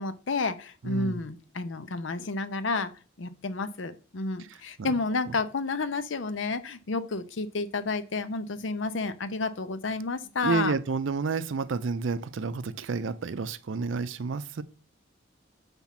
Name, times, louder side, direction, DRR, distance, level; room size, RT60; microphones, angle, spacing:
voice 1, 0.0-2.9 3.2-10.8, left 3 dB, 75° left, 0.6 m, -31 dB
voice 2, 0.8-1.2 4.4-4.5 4.8-4.9 5.3-5.4 10.4-14.6, right 4 dB, 75° right, 0.5 m, -30 dB
7.2 x 3.5 x 5.8 m
head